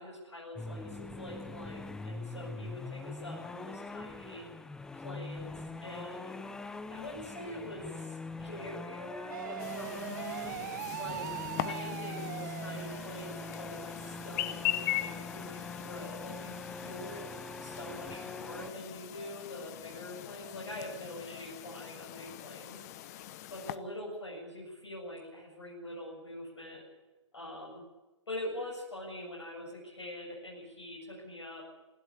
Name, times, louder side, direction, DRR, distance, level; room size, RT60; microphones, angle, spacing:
voice 1, 0.0-4.5 4.9-6.3 6.9-10.7 11.0-17.3 17.6-22.8 23.1-23.2 23.5-26.8 27.3-27.8 28.3-31.6, left 1 dB, 65° left, -2 dB, 7.5 m, -44 dB
sound 1, 0.6-18.7, left 3 dB, 5° left, 0.6 m, -43 dB
sound 2, 9.3-13.4, right 12 dB, 40° right, 1.2 m, -41 dB
Chirp tweet, 9.6-23.8, left 14 dB, 35° left, 1.1 m, -41 dB
26.5 x 12.5 x 8.4 m, 1.1 s
figure-of-eight pair, 125°, 16 cm